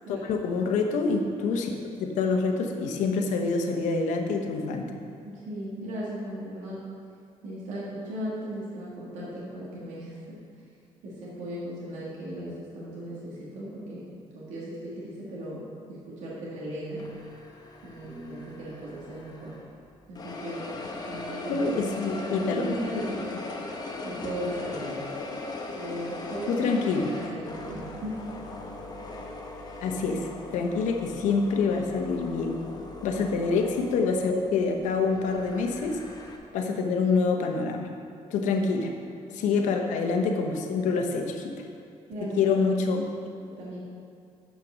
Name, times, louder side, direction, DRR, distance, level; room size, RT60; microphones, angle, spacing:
voice 1, 0.1-4.9 21.5-23.1 26.5-27.1 29.8-32.6 33.0-36.0 36.5-37.9 38.3-38.9 39.3-41.4 42.4-43.1, left 4 dB, 85° left, 3 dB, 1.0 m, -26 dB
voice 2, 5.2-6.8 7.4-10.4 11.0-17.0 17.8-19.6 20.1-20.7 21.1-23.3 24.0-25.0 25.7-26.7 27.1-28.3 33.1-33.3 39.4-39.6 42.1-42.7 43.5-43.8, right 1 dB, 75° right, -7 dB, 2.0 m, -37 dB
sound 1, 17.0-19.8 20.2-36.4, left 2 dB, 30° left, 1.1 m, -39 dB
7.6 x 5.8 x 6.3 m, 2.4 s
cardioid pair, 110°, 12 cm